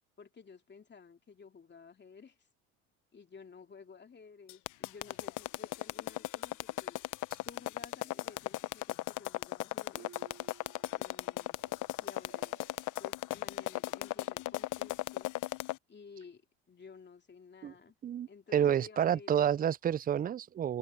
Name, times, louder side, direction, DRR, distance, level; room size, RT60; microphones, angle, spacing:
voice 1, 0.2-2.5 3.1-7.0 7.4-10.1 10.9-11.6 12.0-12.6 13.0-15.3 15.9-16.4 16.7-17.9 18.3-19.7, left 5 dB, 30° left, 2.9 m, -54 dB
sound 1, 4.5-15.8, left 17 dB, 55° left, 1.0 m, -36 dB
sound 2, 10.0-13.7, right 9 dB, 45° right, 6.9 m, -59 dB
voice 2, 18.0-20.8, right 9 dB, 25° right, 0.5 m, -29 dB
open air
hypercardioid pair, 75°, 36 cm